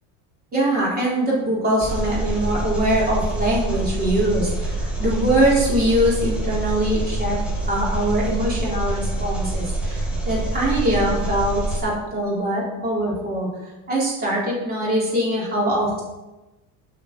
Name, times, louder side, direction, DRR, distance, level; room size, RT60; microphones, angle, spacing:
voice 1, 0.5-7.4 7.7-13.5 13.9-16.0, right 1 dB, 25° right, -6 dB, 3.8 m, -22 dB
Engine, 1.8-11.8, right 2 dB, 5° right, 2.1 m, -26 dB
8.6 x 5.8 x 6.0 m, 1.1 s
cardioid pair, 150°, 38 cm